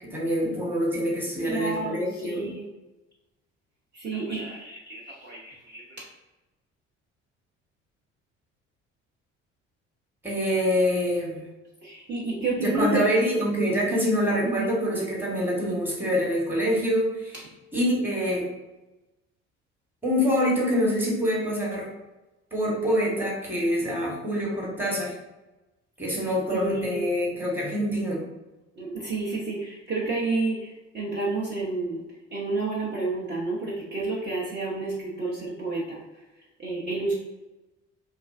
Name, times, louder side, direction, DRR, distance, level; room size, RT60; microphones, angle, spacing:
voice 1, 0.1-2.5 10.2-11.4 12.6-18.5 20.0-21.9 22.5-25.1 26.0-28.2, equal, 5° right, -4 dB, 1.0 m, -25 dB
voice 2, 1.4-2.7 4.0-5.8 11.8-13.2 14.4-14.7 26.5-27.0 28.8-30.6 30.9-32.0 32.3-36.0 36.6-37.1, right 3 dB, 30° right, -6 dB, 0.7 m, -30 dB
2.3 x 2.2 x 2.4 m, 1.1 s
hypercardioid pair, 50°, 35 cm